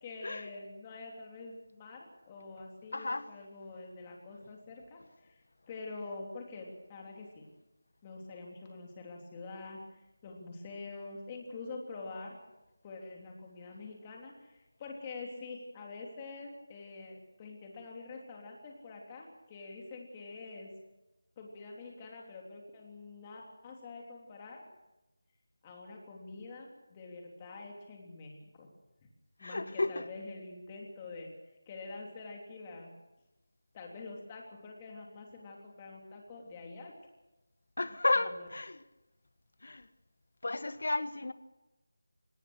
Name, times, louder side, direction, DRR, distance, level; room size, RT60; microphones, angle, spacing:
voice 1, 0.0-7.4 8.0-9.8 10.2-12.4 12.8-20.7 21.4-24.6 25.6-28.7 29.4-31.3 31.7-32.9 33.7-36.9 38.2-38.5, left 3 dB, 15° left, 3.4 m, -46 dB
voice 2, 2.9-3.3 29.4-30.1 37.8-38.8 39.6-39.9 40.4-41.3, left 2 dB, 60° left, 1.4 m, -32 dB
24.5 x 18.5 x 6.5 m
figure-of-eight pair, 175°, 0 cm